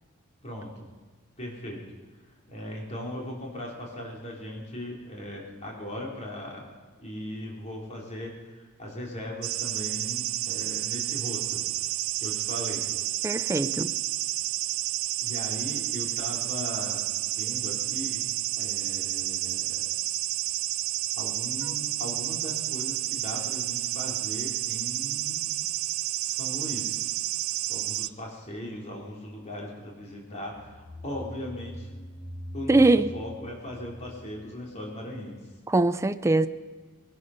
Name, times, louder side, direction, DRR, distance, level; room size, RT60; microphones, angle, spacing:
voice 1, 0.4-0.8 1.4-1.8 2.5-6.7 7.0-11.6 12.2-12.8 15.2-18.3 18.6-19.9 21.2-25.5 26.2-27.0 27.7-31.9 32.5-32.8 33.1-35.4, left 1 dB, 35° left, 3.2 m, -38 dB
sound 1, 9.4-28.1, right 16 dB, 70° right, 0.4 m, -30 dB
voice 2, 13.2-13.9 32.7-33.1 35.7-36.5, right 2 dB, 15° right, 0.4 m, -22 dB
sound 2, 30.5-35.0, equal, 15° left, 1.0 m, -43 dB
21.0 x 11.5 x 5.6 m
head